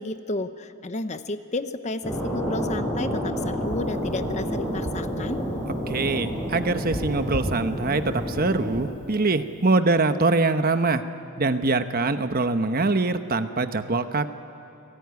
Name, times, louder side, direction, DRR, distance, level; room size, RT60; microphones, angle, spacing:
voice 1, 0.0-5.4, left 2 dB, 30° left, 10 dB, 0.9 m, -32 dB
sound 1, 2.0-8.9, equal, 15° left, 6.2 m, -29 dB
sound 2, 3.7-8.9 9.1-9.7, equal, 75° right, 4.9 m, -38 dB
voice 2, 5.9-11.0 11.4-14.3, right 3 dB, 45° right, 9 dB, 1.0 m, -23 dB
29.5 x 19.0 x 9.6 m, 2.7 s
head